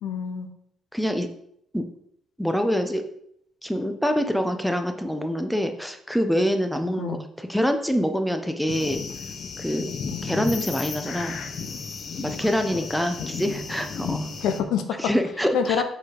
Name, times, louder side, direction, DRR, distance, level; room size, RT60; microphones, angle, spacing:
voice 1, 0.0-0.5 7.0-7.2 10.1-10.4 13.5-13.6 14.4-15.1 15.5-15.8, left 7 dB, 85° left, 8 dB, 0.7 m, -26 dB
voice 2, 0.9-1.3 1.7-1.9 2.4-3.0 3.6-9.0 9.6-9.9 10.2-11.4 12.2-14.3 15.0-15.8, equal, ahead, 6 dB, 0.7 m, -25 dB
sound 1, 8.7-14.6, left 5 dB, 55° left, 0.7 m, -33 dB
5.2 x 4.1 x 4.8 m, 0.72 s
cardioid pair, 90°, 0 cm